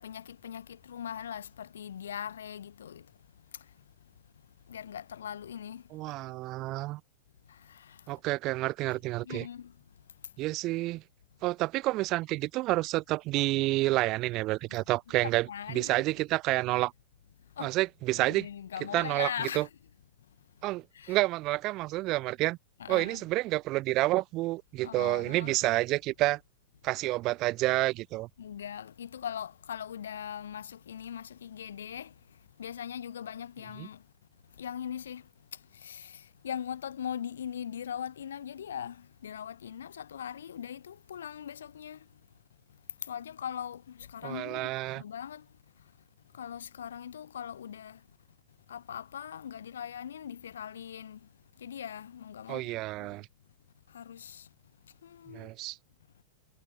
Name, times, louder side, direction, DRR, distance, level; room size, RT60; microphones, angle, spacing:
voice 1, 0.0-3.1 4.7-5.8 7.5-8.0 9.2-9.7 15.5-16.0 17.6-17.7 18.1-19.7 20.9-21.2 22.8-23.2 24.8-25.6 28.4-32.1 32.6-34.0 34.6-35.2 35.7-42.0 43.1-45.4 46.3-48.0 48.7-51.2 51.6-53.1 53.9-54.5 55.0-55.5, left 9 dB, 65° left, 0.7 m, -40 dB
voice 2, 5.9-7.0 8.1-9.5 10.4-11.0 11.4-16.9 17.6-18.5 18.9-19.7 20.6-22.6 22.9-26.4 26.8-28.3 33.8-33.9 44.2-45.0 52.5-53.3 55.3-55.8, right 19 dB, 40° right, 1.0 m, -29 dB
figure-of-eight pair, 95°, 0 cm